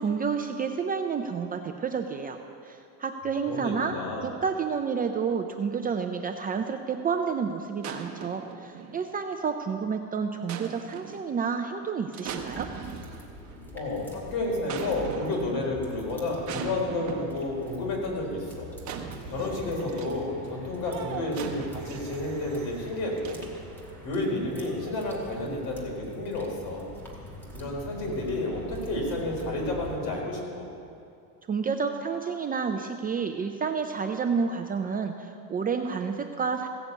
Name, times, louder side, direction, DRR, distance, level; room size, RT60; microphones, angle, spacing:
voice 1, 0.0-2.4 2.6-3.9 4.2-12.7 31.5-36.7, right 5 dB, 20° right, 5 dB, 0.4 m, -30 dB
voice 2, 3.5-4.3 13.7-18.7 19.3-23.4 24.0-26.9 27.5-30.7, left 2 dB, 60° left, -1 dB, 4.0 m, -31 dB
sound 1, 7.8-9.3 10.5-11.3 12.1-13.5 14.7-15.7 16.5-17.5 18.8-20.3 20.9-23.8 24.6-25.1, right 7 dB, 45° right, 1.1 m, -40 dB
sound 2, 12.4-30.0, equal, 5° left, 2.1 m, -44 dB
15.5 x 7.1 x 8.2 m, 2.5 s
cardioid pair, 155°, 41 cm